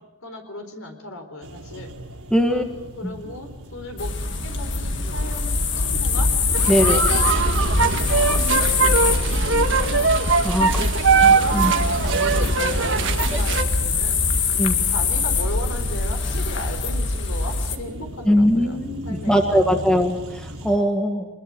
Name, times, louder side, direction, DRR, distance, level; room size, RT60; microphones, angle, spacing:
voice 1, 0.2-1.9 2.4-2.6 3.0-6.3 6.7-8.3 8.8-10.1 10.6-14.2 14.8-18.8 19.1-19.8, left 2 dB, 70° left, 6 dB, 4.1 m, -36 dB
sound 1, 1.4-20.8, equal, 75° right, 5.2 m, -38 dB
voice 2, 2.3-2.6 3.0-3.1 6.7-7.0 10.4-10.9 11.2-11.7 14.6-14.8 18.2-21.3, equal, 5° left, 4 dB, 1.7 m, -20 dB
sound 2, 4.0-17.8, left 3 dB, 55° left, 2.0 m, -23 dB
sound 3, 6.5-13.6, right 5 dB, 55° right, 1.6 m, -21 dB
25.0 x 21.0 x 7.6 m, 0.97 s
head